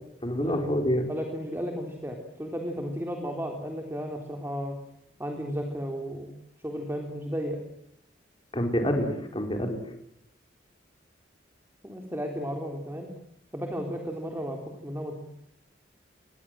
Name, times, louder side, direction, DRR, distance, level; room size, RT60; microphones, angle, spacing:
voice 1, 0.2-1.1 8.5-9.8, equal, 30° left, 4 dB, 4.4 m, -27 dB
voice 2, 1.1-4.7 5.2-6.3 6.6-7.6 11.8-13.1 13.5-15.2, equal, 15° right, 2 dB, 3.8 m, -34 dB
28.0 x 23.0 x 7.7 m, 0.74 s
head